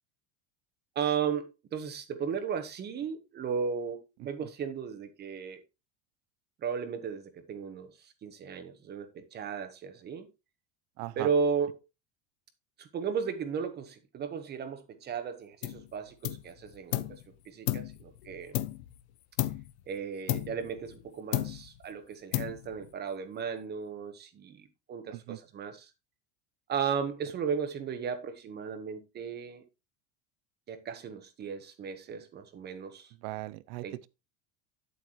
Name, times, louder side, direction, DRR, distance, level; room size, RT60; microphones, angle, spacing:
voice 1, 0.9-5.6 6.6-10.3 11.2-11.8 12.8-17.2 17.5-18.6 19.9-25.9 26.7-29.6 30.7-33.1 33.8-34.0, right 6 dB, 30° right, 1.1 m, -35 dB
voice 2, 11.0-11.3 25.1-25.4 33.2-34.1, right 18 dB, 55° right, 0.6 m, -39 dB
sound 1, 15.6-15.9 16.2-17.2 17.7-19.0 19.4-19.8 20.3-21.0 21.3-21.8 22.3-22.9, left 16 dB, 70° left, 0.8 m, -33 dB
8.3 x 8.0 x 3.0 m
supercardioid pair, 140°, 34 cm